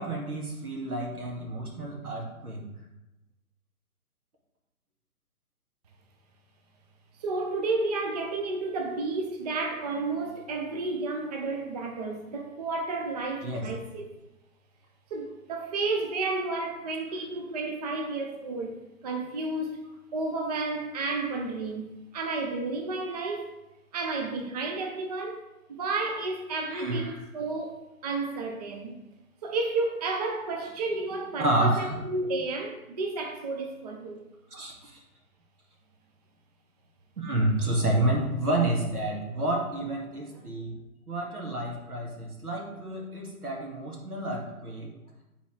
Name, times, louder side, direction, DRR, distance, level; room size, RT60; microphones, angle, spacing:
voice 1, 0.0-2.6 13.4-13.6 26.7-27.2 31.4-32.0 34.5-34.9 37.2-40.7 41.1-44.9, right 1 dB, 85° right, -1 dB, 2.1 m, -29 dB
voice 2, 7.2-14.0 15.1-18.8 19.0-23.5 23.9-25.4 25.7-29.0 29.4-34.2, right 3 dB, 30° right, 3 dB, 0.5 m, -31 dB
8.5 x 4.1 x 3.3 m, 0.95 s
figure-of-eight pair, 135°, 44 cm